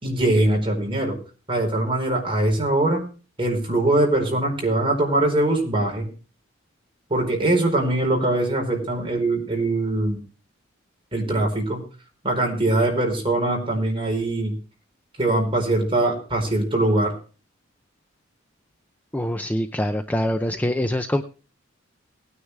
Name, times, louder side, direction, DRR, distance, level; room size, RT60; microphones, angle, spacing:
voice 1, 0.0-1.2 1.5-3.0 3.4-6.1 7.1-10.2 11.1-11.8 12.2-14.6 15.2-17.1, right 2 dB, 25° right, 0 dB, 4.6 m, -22 dB
voice 2, 19.1-21.2, left 1 dB, 10° left, 7 dB, 0.6 m, -24 dB
19.5 x 9.7 x 3.4 m, 0.36 s
head